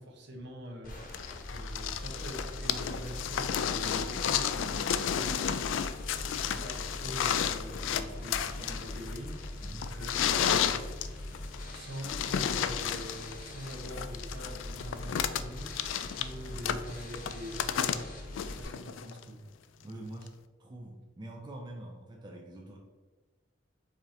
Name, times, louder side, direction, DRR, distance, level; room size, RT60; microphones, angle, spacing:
voice 1, 0.0-5.7 6.2-10.9 11.7-15.8 16.2-18.2 18.6-19.5, equal, 65° right, 1 dB, 1.0 m, -44 dB
sound 1, 0.8-18.6, left 1 dB, 50° left, 1.0 m, -42 dB
sound 2, 1.1-19.2 20.3-20.4, left 9 dB, 80° left, 0.3 m, -32 dB
voice 2, 9.6-9.9 19.8-20.3 20.6-22.8, right 1 dB, 25° right, 0 dB, 0.5 m, -45 dB
5.0 x 2.8 x 3.8 m, 1.3 s
head